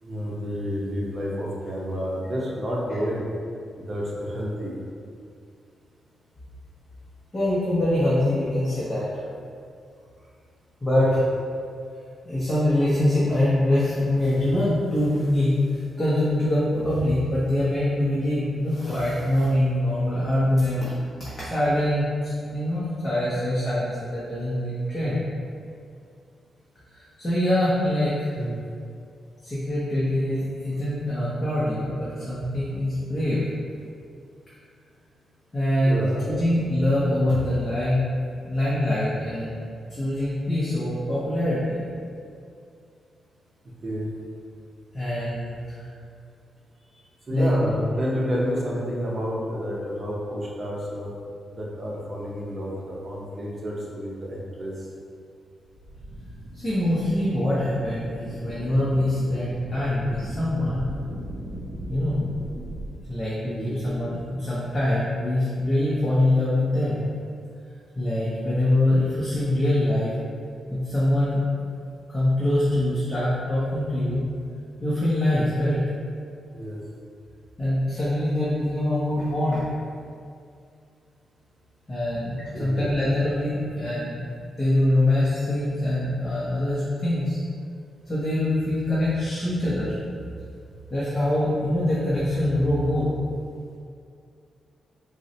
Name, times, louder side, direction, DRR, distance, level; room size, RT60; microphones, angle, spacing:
voice 1, 0.0-3.2 3.7-4.8 11.0-11.1 28.3-28.6 35.8-36.2 43.8-44.1 47.3-51.1 51.5-54.7 63.6-63.7 76.5-76.8 82.5-82.8, equal, 35° right, -4 dB, 0.6 m, -30 dB
voice 2, 7.3-9.1 10.8-11.2 12.2-20.9 21.2-25.2 26.9-28.3 29.4-33.4 35.5-38.0 38.4-39.6 39.9-41.8 44.9-45.9 47.3-47.7 56.5-60.9 61.9-62.2 63.1-67.0 68.0-70.1 70.7-71.5 72.1-74.3 74.8-75.8 77.6-79.6 81.9-84.3 84.6-87.4 88.1-90.0 90.9-93.1, left 1 dB, 25° left, -10 dB, 0.7 m, -24 dB
sound 1, 55.7-62.9, right 1 dB, 80° right, 0.6 m, -38 dB
3.8 x 2.1 x 2.7 m, 2.3 s
cardioid pair, 120°, 0 cm